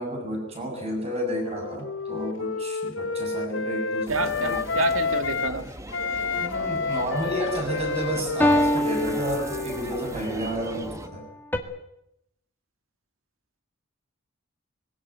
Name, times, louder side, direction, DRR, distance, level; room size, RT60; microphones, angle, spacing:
voice 1, 0.0-4.6 6.3-11.2, right 1 dB, 30° right, 2 dB, 7.7 m, -31 dB
Wind instrument woodwind instrument, 1.2-5.6 5.9-10.4, left 4 dB, 65° left, 0.9 m, -30 dB
sound 1, 4.1-11.1, right 1 dB, 15° right, 1.5 m, -39 dB
voice 2, 4.1-5.7, right 4 dB, 90° right, 9 dB, 2.0 m, -28 dB
sound 2, 6.3-7.0 8.4-10.0 11.5-11.6, left 1 dB, 10° left, 1.9 m, -25 dB
21.5 x 18.0 x 9.4 m, 0.80 s
head